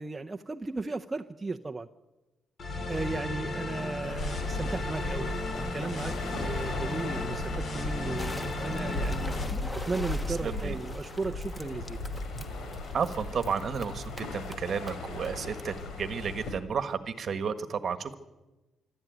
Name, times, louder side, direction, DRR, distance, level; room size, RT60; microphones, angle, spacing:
voice 1, 0.0-1.9 2.9-9.3 9.9-12.0, right 3 dB, 15° right, 4 dB, 0.6 m, -36 dB
sound 1, 2.6-9.4, left 2 dB, 35° left, 3.8 m, -35 dB
sound 2, 4.0-16.5, left 2 dB, 70° left, 4.7 m, -37 dB
sound 3, 8.2-15.8, left 1 dB, 10° left, 1.4 m, -45 dB
voice 2, 10.2-10.8 12.9-18.1, right 6 dB, 40° right, 10 dB, 1.5 m, -32 dB
25.5 x 12.5 x 9.4 m, 1.1 s
cardioid pair, 155°, 0 cm